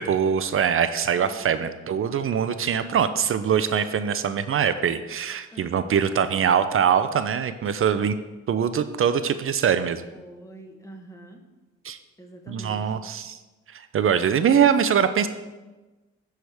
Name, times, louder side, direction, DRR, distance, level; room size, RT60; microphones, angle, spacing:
voice 1, 0.0-8.2 8.5-10.1 11.8-12.0 12.5-13.4 13.7-15.3, right 8 dB, 45° right, 11 dB, 0.5 m, -23 dB
voice 2, 1.1-1.7 5.5-5.9 10.1-11.4 12.2-13.0, right 1 dB, 10° left, 3 dB, 1.2 m, -45 dB
13.0 x 4.7 x 3.5 m, 1.2 s
cardioid pair, 90°, 30 cm